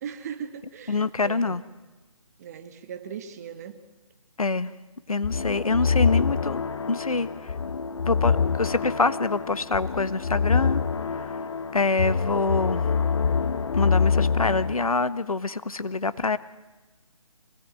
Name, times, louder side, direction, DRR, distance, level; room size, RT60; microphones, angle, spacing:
voice 1, 0.0-1.6 2.4-3.8, right 8 dB, 30° right, 9 dB, 1.6 m, -38 dB
voice 2, 0.9-1.6 4.4-4.7 5.1-6.6 6.9-7.3 8.1-10.8 11.7-12.8 13.7-16.4, left 3 dB, 90° left, 15 dB, 1.3 m, -25 dB
sound 1, 5.2-14.7, left 5 dB, 55° left, 1.1 m, -25 dB
25.5 x 18.5 x 9.2 m, 1.2 s
figure-of-eight pair, 155°, 18 cm